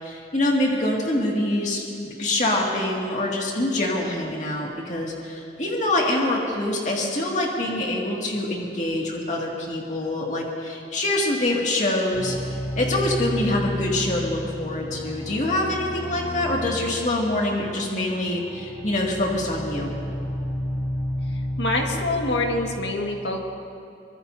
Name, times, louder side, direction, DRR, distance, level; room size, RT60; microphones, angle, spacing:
voice 1, 0.0-1.8 2.2-20.0, left 1 dB, 45° left, -2 dB, 2.2 m, -25 dB
sound 1, 12.1-22.9, equal, ahead, 2.8 m, -32 dB
voice 2, 21.6-23.5, left 2 dB, 85° left, 1 dB, 1.8 m, -25 dB
24.5 x 21.5 x 2.8 m, 2.5 s
head